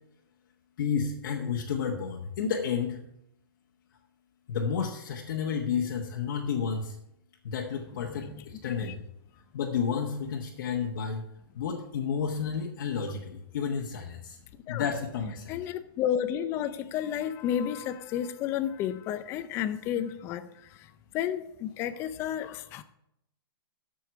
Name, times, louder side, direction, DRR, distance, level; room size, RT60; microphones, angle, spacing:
voice 1, 0.8-3.0 4.5-7.0 7.4-9.0 9.5-11.2 11.5-14.4 14.7-15.6, left 6 dB, 55° left, 1.2 m, -31 dB
voice 2, 15.5-20.9 21.1-22.8, left 10 dB, 20° left, 0.5 m, -32 dB
7.8 x 7.0 x 6.9 m
hypercardioid pair, 160°, 13 cm